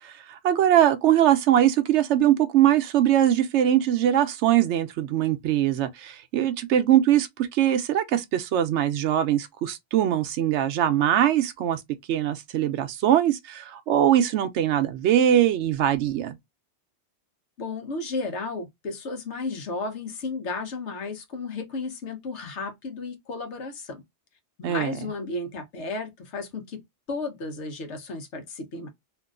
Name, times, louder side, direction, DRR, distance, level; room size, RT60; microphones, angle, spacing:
voice 1, 0.0-11.8 12.1-16.3 24.6-24.9, right 11 dB, 80° right, 0.9 m, -22 dB
voice 2, 17.6-24.0 24.6-26.8 27.1-28.9, left 3 dB, 80° left, 1.2 m, -33 dB
2.9 x 2.5 x 2.4 m
omnidirectional pair, 1.2 m